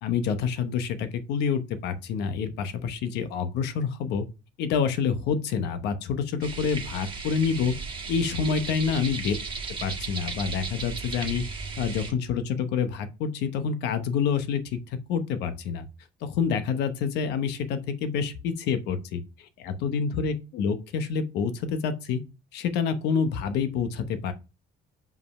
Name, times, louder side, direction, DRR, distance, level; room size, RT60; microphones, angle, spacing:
voice 1, 0.0-4.3 4.6-7.7 8.1-9.4 9.8-11.4 11.8-15.9 16.2-22.2 22.5-24.3, left 6 dB, 85° left, 1.0 m, -27 dB
sound 1, 6.4-12.1, right 4 dB, 30° right, 1.9 m, -35 dB
5.4 x 5.3 x 5.4 m
cardioid pair, 110°, 17 cm